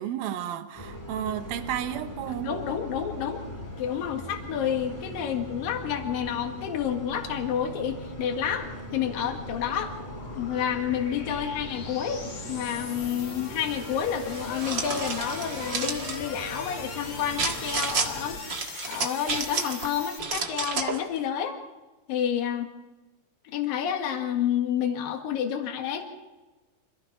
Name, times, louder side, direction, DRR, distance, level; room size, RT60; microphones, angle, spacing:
voice 1, 0.0-2.5, right 10 dB, 75° right, 2.9 m, -32 dB
sound 1, 0.7-18.4, equal, 5° left, 2.7 m, -41 dB
voice 2, 2.4-3.5 3.8-9.9 10.4-18.6 18.9-21.6 22.1-22.7 23.5-26.0, left 9 dB, 70° left, 3.5 m, -29 dB
sound 2, 7.1-20.2, left 4 dB, 40° left, 2.2 m, -41 dB
sound 3, 14.3-16.2 17.4-18.1 18.5-19.9 20.2-21.0, right 4 dB, 40° right, 1.8 m, -31 dB
26.5 x 17.5 x 5.8 m
omnidirectional pair, 4.3 m